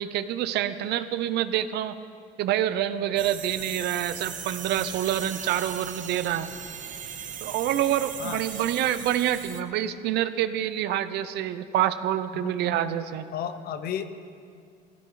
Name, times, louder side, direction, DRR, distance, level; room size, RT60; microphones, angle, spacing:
voice 1, 0.0-1.9 2.4-6.5 7.4-13.2, right 11 dB, 80° right, 12 dB, 0.7 m, -27 dB
sound 1, 3.2-9.6, right 8 dB, 50° right, 0.9 m, -38 dB
voice 2, 8.2-8.6 12.3-12.5 13.3-14.0, left 9 dB, 65° left, 10 dB, 0.9 m, -33 dB
19.0 x 16.5 x 3.9 m, 2.3 s
cardioid pair, 110°, 17 cm